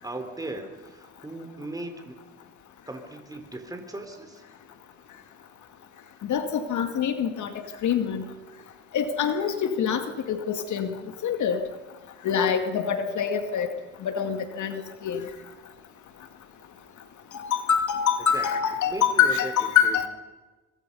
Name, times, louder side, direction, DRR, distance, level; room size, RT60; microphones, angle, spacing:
voice 1, 0.0-2.2 2.9-4.5 18.3-18.5 18.9-20.1, right 2 dB, 10° right, 5 dB, 3.9 m, -37 dB
voice 2, 6.2-7.5 7.8-8.2 8.9-10.9 11.2-11.6 12.2-13.7 14.0-15.2 17.3-20.1, left 8 dB, 75° left, 7 dB, 2.2 m, -25 dB
26.0 x 25.0 x 5.5 m, 1.2 s
cardioid pair, 90°, 30 cm